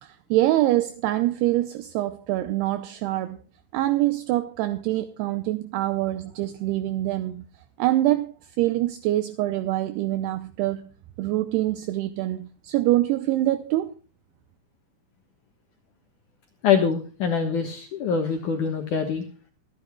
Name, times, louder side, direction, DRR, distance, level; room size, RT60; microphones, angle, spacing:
voice 1, 0.0-3.4 3.7-7.4 7.8-10.9 11.2-14.0, right 15 dB, 80° right, 2.5 m, -25 dB
voice 2, 16.6-19.3, left 6 dB, 65° left, 2.1 m, -24 dB
25.5 x 10.5 x 2.3 m
omnidirectional pair, 5.1 m